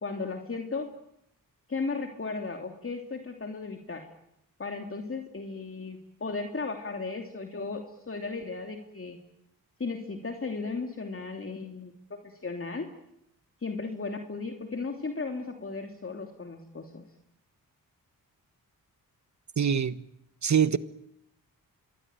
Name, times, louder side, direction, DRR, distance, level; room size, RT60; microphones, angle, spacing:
voice 1, 0.0-0.9 1.7-4.1 4.6-9.2 9.8-12.9 13.6-17.0, left 4 dB, 35° left, 2.9 m, -35 dB
voice 2, 19.6-20.0 20.4-20.8, right 7 dB, 50° right, 1.3 m, -24 dB
26.0 x 21.5 x 9.0 m
cardioid pair, 65°, 36 cm